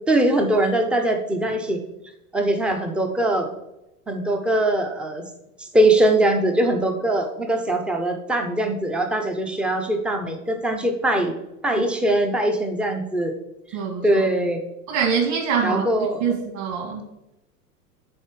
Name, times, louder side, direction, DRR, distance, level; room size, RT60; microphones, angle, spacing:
voice 1, 0.1-1.8 2.3-3.5 4.1-5.2 5.6-11.3 11.6-13.3 13.7-14.6 15.6-16.4, right 1 dB, 5° right, 4 dB, 0.3 m, -22 dB
voice 2, 13.7-14.2 14.9-15.8 16.2-17.0, right 6 dB, 55° right, 0 dB, 2.0 m, -24 dB
10.0 x 4.1 x 3.1 m, 0.91 s
hypercardioid pair, 90°, 46 cm